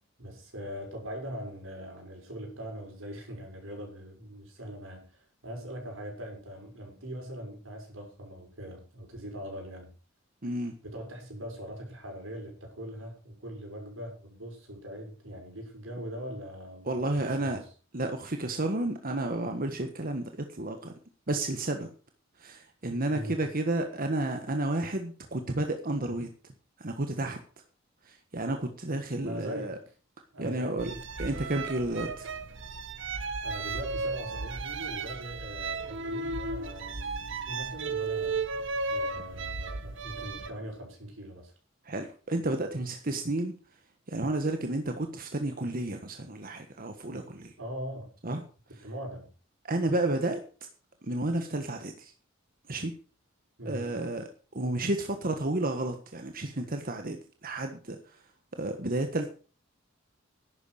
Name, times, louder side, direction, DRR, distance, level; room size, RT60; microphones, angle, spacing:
voice 1, 0.2-9.9 10.8-17.7 23.1-23.5 29.2-29.9 30.3-31.0 33.4-38.5 38.9-41.5 47.6-48.1 48.8-49.3 53.6-54.0, equal, 85° right, 6.2 m, -41 dB
voice 2, 10.4-10.7 16.9-17.6 17.9-20.9 21.3-21.9 22.4-26.3 26.8-27.4 28.1-29.8 30.4-30.9 31.2-32.3 41.9-43.5 44.1-47.5 48.2-48.4 49.6-50.4 51.0-52.1 52.7-52.9 53.6-54.2 54.5-57.2 57.4-58.0 58.6-59.3, right 2 dB, 45° right, 1.5 m, -31 dB
sound 1, 30.8-40.5, right 3 dB, 65° right, 1.3 m, -34 dB
11.5 x 9.6 x 6.5 m
head